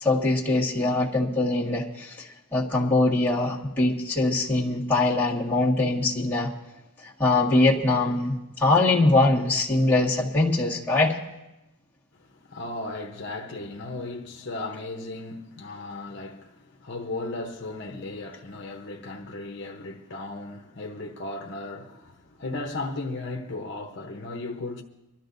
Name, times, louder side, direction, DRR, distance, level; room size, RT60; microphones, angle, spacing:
voice 1, 0.0-6.5 7.2-11.2, left 2 dB, 10° left, 1.7 m, -22 dB
voice 2, 12.2-24.8, left 2 dB, 55° left, 0.9 m, -36 dB
24.5 x 13.5 x 2.7 m
head